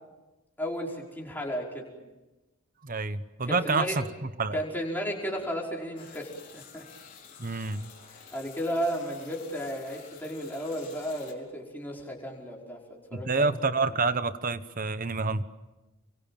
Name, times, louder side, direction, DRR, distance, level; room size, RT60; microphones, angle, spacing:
voice 1, 0.6-1.9 3.5-4.0 4.5-6.8 7.5-7.6 8.3-12.8 13.1-13.5, equal, 10° left, -2 dB, 5.2 m, -34 dB
voice 2, 2.8-4.6 7.4-7.9 13.1-15.4, right 4 dB, 40° right, 13 dB, 1.1 m, -28 dB
sound 1, 6.0-11.3, left 6 dB, 40° left, 4.5 m, -50 dB
30.0 x 24.5 x 7.5 m, 1.1 s
head